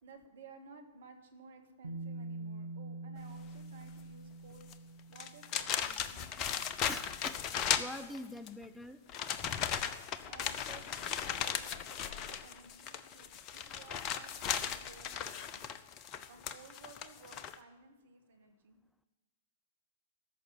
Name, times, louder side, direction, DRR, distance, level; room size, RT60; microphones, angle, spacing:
voice 1, 0.0-4.7 5.1-6.6 10.2-15.7 16.3-18.8, right 4 dB, 65° right, 4 dB, 2.0 m, -56 dB
Bass guitar, 1.8-7.9, right 2 dB, 85° right, 0.8 m, -46 dB
sound 1, 4.6-4.7 5.1-8.5 9.1-17.6, left 8 dB, 35° left, 0.9 m, -37 dB
voice 2, 6.9-9.0, left 1 dB, 5° left, 10 dB, 0.7 m, -45 dB
14.0 x 6.7 x 10.0 m, 1.1 s
figure-of-eight pair, 105°, 0 cm